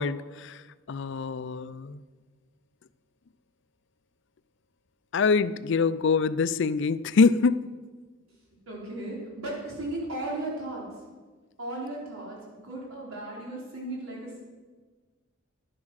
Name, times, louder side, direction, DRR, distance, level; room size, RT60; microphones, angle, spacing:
voice 1, 0.0-2.0 5.1-7.6, left 4 dB, 60° left, 16 dB, 0.4 m, -25 dB
voice 2, 8.7-11.0 11.6-14.4, right 1 dB, 90° right, -3 dB, 4.5 m, -36 dB
11.0 x 11.0 x 6.4 m, 1.4 s
head